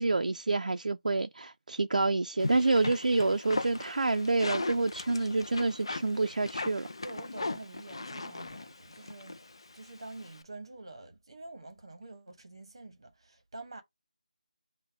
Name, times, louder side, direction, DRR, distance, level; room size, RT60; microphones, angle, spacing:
voice 1, 0.0-6.9, right 3 dB, 80° right, 0.4 m, -28 dB
sound 1, 2.4-10.4, left 2 dB, 40° left, 0.4 m, -39 dB
voice 2, 7.0-13.8, right 2 dB, 40° right, 1.0 m, -47 dB
5.3 x 2.1 x 3.5 m
figure-of-eight pair, 180°, 4 cm